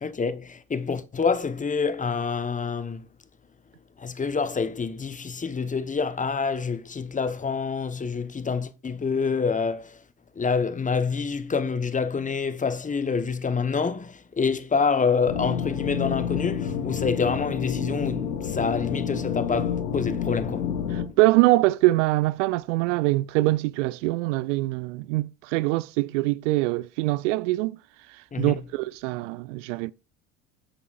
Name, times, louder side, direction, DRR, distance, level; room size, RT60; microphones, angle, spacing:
voice 1, 0.0-3.1 4.0-10.0 10.4-20.7 28.3-28.6, left 5 dB, 20° left, 1.0 m, -27 dB
sound 1, 15.3-21.1, left 8 dB, 75° left, 1.7 m, -29 dB
voice 2, 20.9-27.8 28.4-29.9, right 19 dB, 60° right, 0.5 m, -23 dB
20.0 x 8.4 x 2.5 m
figure-of-eight pair, 65°, 42 cm